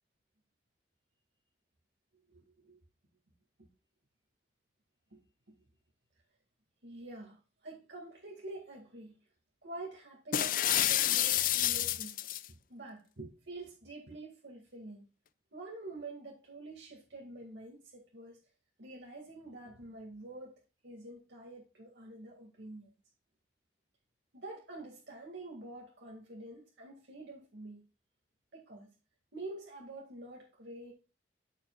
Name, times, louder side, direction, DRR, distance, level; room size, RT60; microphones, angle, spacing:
voice 1, 2.3-2.8 5.1-5.2 6.8-9.1 9.6-12.2 12.7-15.0 15.5-18.4 18.8-20.6 20.8-22.9 24.3-27.9 28.5-28.9 29.3-30.9, right 2 dB, 85° right, 2.1 m, -47 dB
sound 1, 10.3-12.5, left 12 dB, 50° left, 0.5 m, -29 dB
13.5 x 5.3 x 2.4 m
head